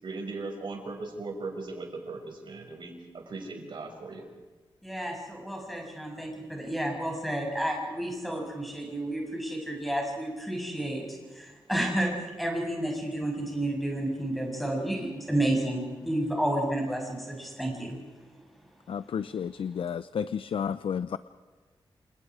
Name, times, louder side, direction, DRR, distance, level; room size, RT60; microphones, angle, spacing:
voice 1, 0.0-4.2, right 3 dB, 60° right, 2 dB, 6.1 m, -38 dB
voice 2, 4.8-18.0, right 1 dB, ahead, 0 dB, 7.0 m, -31 dB
voice 3, 18.9-21.2, left 7 dB, 85° left, 14 dB, 0.6 m, -32 dB
28.5 x 27.5 x 4.9 m, 1.4 s
wide cardioid pair, 155°, 9 cm